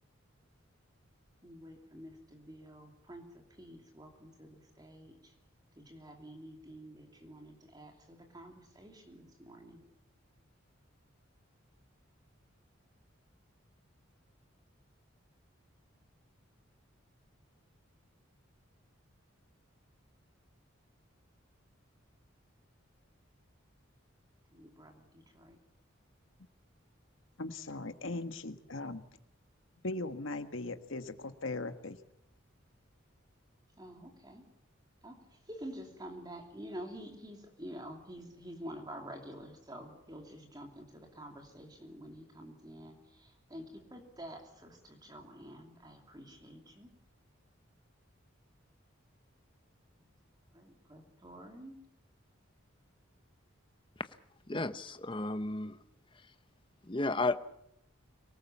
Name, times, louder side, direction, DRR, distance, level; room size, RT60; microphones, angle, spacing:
voice 1, 1.4-5.3 5.8-9.8 24.5-25.6 33.8-34.5 35.0-46.9 50.0-50.1 50.5-51.8, equal, 20° right, 3 dB, 2.9 m, -49 dB
voice 2, 27.4-29.0 29.8-32.0, left 2 dB, 70° left, 9 dB, 1.6 m, -39 dB
voice 3, 54.5-55.8 56.9-57.4, left 2 dB, 25° left, 12 dB, 0.8 m, -33 dB
24.5 x 18.5 x 7.2 m, 0.76 s
head